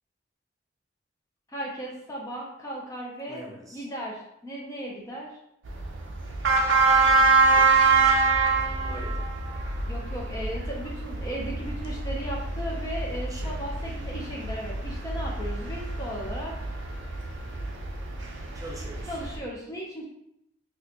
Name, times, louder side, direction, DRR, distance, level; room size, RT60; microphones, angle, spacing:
voice 1, 1.5-3.4 3.7-5.3 9.9-16.6 19.1-20.0, equal, 20° left, -3 dB, 0.5 m, -36 dB
voice 2, 3.3-3.9 7.5-7.7 8.8-9.4 13.3-13.6 18.5-19.2, right 1 dB, 20° right, -2 dB, 0.7 m, -43 dB
sound 1, 5.6-19.4, right 4 dB, 85° right, 0.6 m, -25 dB
4.1 x 2.1 x 2.7 m, 0.78 s
head